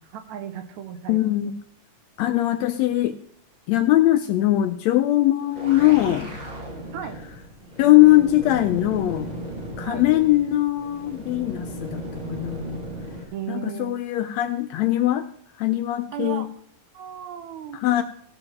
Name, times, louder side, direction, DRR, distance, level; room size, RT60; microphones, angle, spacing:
voice 1, 0.1-1.2 6.9-7.2 9.8-10.1 13.3-14.0 16.1-16.5 16.9-18.0, right 9 dB, 75° right, 8 dB, 2.2 m, -35 dB
voice 2, 1.1-1.5 2.2-3.1 3.7-6.3 7.8-9.3 9.8-12.8 13.5-15.3 15.6-16.4 17.8-18.0, left 15 dB, 80° left, 8 dB, 1.6 m, -20 dB
sound 1, 5.4-13.2, right 1 dB, 25° right, 1.0 m, -36 dB
15.5 x 5.4 x 5.9 m, 0.64 s
omnidirectional pair, 3.5 m